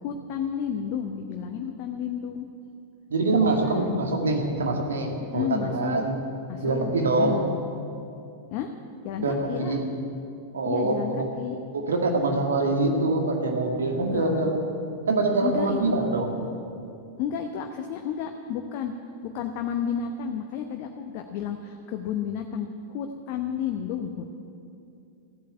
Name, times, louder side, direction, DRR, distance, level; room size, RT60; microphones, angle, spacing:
voice 1, 0.0-2.5 3.3-4.1 5.2-6.1 6.5-6.9 7.2-7.5 8.5-8.7 9.0-9.8 10.6-11.6 13.9-14.5 15.4-16.0 17.2-18.9 19.2-24.3, left 8 dB, 45° left, 4 dB, 0.9 m, -32 dB
voice 2, 3.1-6.1 6.6-7.5 9.2-9.8 10.5-11.3 11.7-14.6 15.1-16.3, right 2 dB, 70° right, 2 dB, 2.0 m, -24 dB
14.5 x 8.5 x 9.1 m, 2.6 s
figure-of-eight pair, 95°, 0 cm